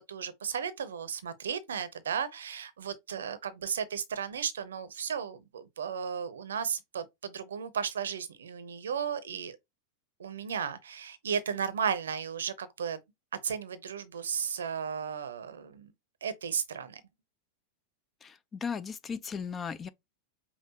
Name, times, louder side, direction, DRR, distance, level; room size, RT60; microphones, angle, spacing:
voice 1, 0.1-9.6 10.2-13.0 13.4-15.9 16.2-17.0, right 7 dB, 65° right, 0.6 m, -34 dB
voice 2, 18.2-19.9, left 6 dB, 20° left, 0.3 m, -36 dB
5.6 x 2.4 x 2.8 m
figure-of-eight pair, 90°, 0 cm